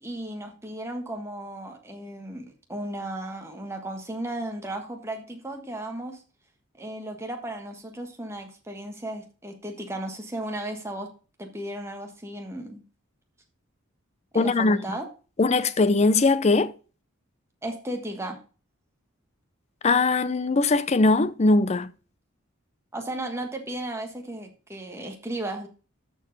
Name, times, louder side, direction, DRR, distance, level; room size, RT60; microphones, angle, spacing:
voice 1, 0.0-6.2 6.8-11.1 11.4-12.8 14.3-15.1 17.6-18.4 22.9-25.7, right 1 dB, 15° right, 1.4 m, -35 dB
voice 2, 14.3-14.8 15.4-16.7 19.8-21.9, left 3 dB, 30° left, 0.5 m, -20 dB
13.5 x 4.7 x 4.0 m
head